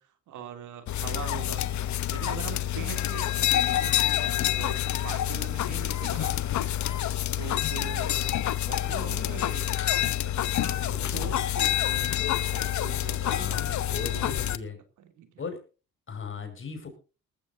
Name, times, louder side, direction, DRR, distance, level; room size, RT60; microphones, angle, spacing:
voice 1, 0.0-1.6 2.1-9.7 9.9-14.5 15.0-15.3, right 8 dB, 80° right, 8 dB, 2.9 m, -43 dB
sound 1, 0.9-14.6, left 12 dB, 70° left, 1.0 m, -27 dB
voice 2, 2.7-3.2 7.7-8.1 10.8-11.4 13.3-14.8 15.4-15.6 16.1-16.9, left 5 dB, 40° left, 6 dB, 5.7 m, -39 dB
19.5 x 14.0 x 2.7 m, 0.34 s
cardioid pair, 90°, 30 cm